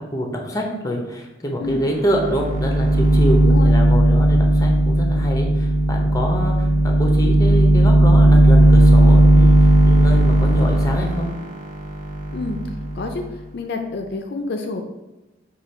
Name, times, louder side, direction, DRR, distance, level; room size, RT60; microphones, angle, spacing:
voice 1, 0.0-11.3, equal, 20° left, 1 dB, 0.6 m, -26 dB
sound 1, 1.7-1.8 2.1-13.2, right 1 dB, 45° right, 0.7 m, -15 dB
voice 2, 13.5-14.8, left 3 dB, 60° left, 4 dB, 0.4 m, -28 dB
4.9 x 2.3 x 4.2 m, 1.0 s
head